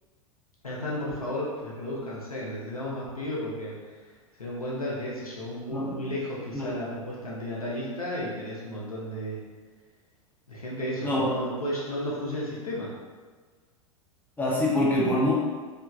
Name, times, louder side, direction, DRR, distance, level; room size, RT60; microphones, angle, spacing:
voice 1, 0.6-4.1 4.4-9.4 10.5-12.9, equal, 85° left, -5 dB, 0.5 m, -33 dB
voice 2, 14.4-15.3, left 1 dB, 10° left, -6 dB, 0.4 m, -25 dB
2.9 x 2.4 x 2.3 m, 1.4 s
figure-of-eight pair, 90°, 18 cm